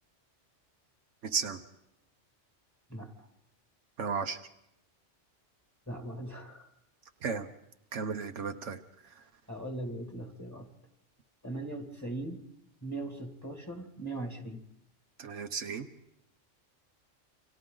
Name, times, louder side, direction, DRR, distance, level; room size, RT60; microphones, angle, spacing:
voice 1, 1.2-1.6 4.0-4.4 7.2-7.5 7.9-8.8 15.2-15.9, right 5 dB, 75° right, 7 dB, 1.3 m, -34 dB
voice 2, 2.9-3.3 5.9-6.7 9.5-10.7 11.4-12.4 12.8-14.6, right 2 dB, 15° left, 3 dB, 2.4 m, -39 dB
29.5 x 26.0 x 3.9 m, 0.80 s
omnidirectional pair, 1.3 m